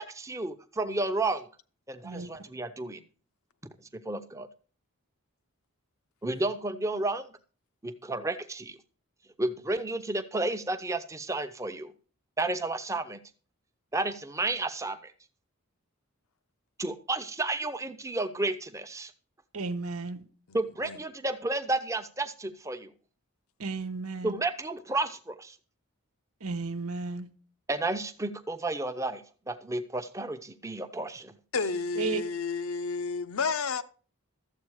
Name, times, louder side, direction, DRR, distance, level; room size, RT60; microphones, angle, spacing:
voice 1, 0.0-1.5 1.9-3.0 3.9-4.5 6.2-7.3 7.8-8.8 9.4-11.9 12.4-13.2 13.9-15.1 16.8-19.1 20.5-22.9 24.2-25.6 27.7-31.4, right 2 dB, 15° right, 0.7 m, -32 dB
voice 2, 19.5-20.2 23.6-24.4 26.4-27.3 32.0-32.2, right 3 dB, 85° right, 1.1 m, -33 dB
voice 3, 31.5-33.8, left 4 dB, 80° left, 0.8 m, -31 dB
13.0 x 7.9 x 4.8 m
head